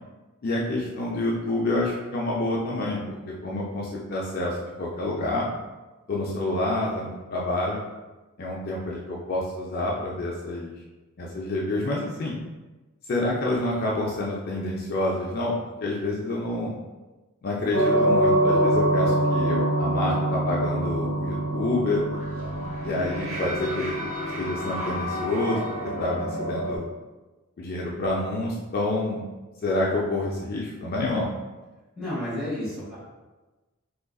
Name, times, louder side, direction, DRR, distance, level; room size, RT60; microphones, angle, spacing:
voice 1, 0.4-5.5 6.1-7.8 8.4-10.7 11.2-12.4 13.1-15.5 15.8-16.7 17.4-22.0 22.8-23.9 24.4-26.9 27.6-29.2 29.6-31.3, left 2 dB, 45° left, -4 dB, 0.4 m, -28 dB
sound 1, 17.7-26.8, right 1 dB, 75° right, 0.9 m, -25 dB
voice 2, 31.9-33.0, left 1 dB, 5° right, -9 dB, 1.5 m, -31 dB
3.6 x 3.0 x 2.3 m, 1.2 s
head